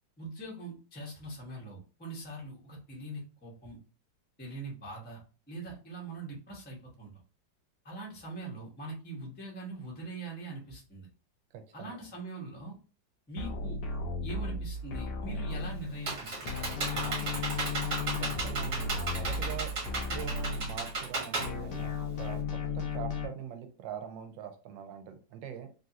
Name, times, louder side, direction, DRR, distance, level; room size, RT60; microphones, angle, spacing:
voice 1, 0.2-3.8 4.4-5.2 5.5-7.1 7.8-11.1 11.7-12.7 13.3-13.8 14.2-17.6, right 2 dB, 15° left, -3 dB, 0.4 m, -42 dB
voice 2, 11.5-12.0 18.2-25.7, right 9 dB, 85° right, 7 dB, 1.3 m, -43 dB
sound 1, 13.4-16.2 16.5-21.1 21.4-23.3, left 3 dB, 70° left, 1.2 m, -35 dB
Computer keyboard, 15.5-22.4, right 3 dB, 50° right, 1.3 m, -35 dB
3.5 x 2.4 x 2.7 m, 0.37 s
omnidirectional pair, 2.0 m